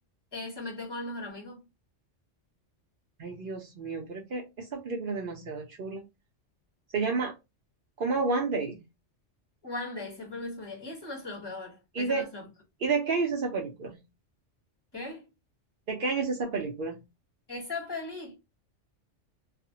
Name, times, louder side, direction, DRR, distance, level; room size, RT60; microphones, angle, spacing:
voice 1, 0.3-1.6 9.6-12.5 14.9-15.3 17.5-18.3, left 2 dB, 20° left, 1.1 m, -38 dB
voice 2, 3.2-6.0 6.9-7.3 8.0-8.8 11.9-12.3 12.8-14.0 15.9-17.0, right 4 dB, 55° right, 0.7 m, -30 dB
2.4 x 2.1 x 2.7 m
omnidirectional pair, 1.2 m